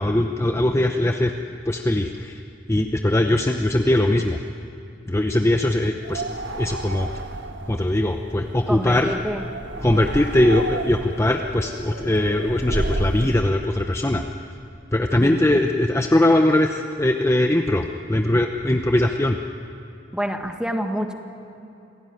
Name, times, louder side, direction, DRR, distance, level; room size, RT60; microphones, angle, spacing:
voice 1, 0.0-1.3 1.7-2.4 2.7-4.4 5.1-6.3 6.5-7.1 7.7-9.1 9.8-14.2 14.9-19.4, left 1 dB, 15° left, 4 dB, 0.8 m, -20 dB
sound 1, 6.0-13.3, right 2 dB, 85° right, 1.4 m, -32 dB
voice 2, 8.7-9.4 15.2-15.4 20.1-21.1, equal, 5° right, 4 dB, 1.7 m, -27 dB
27.0 x 16.5 x 9.4 m, 2.8 s
head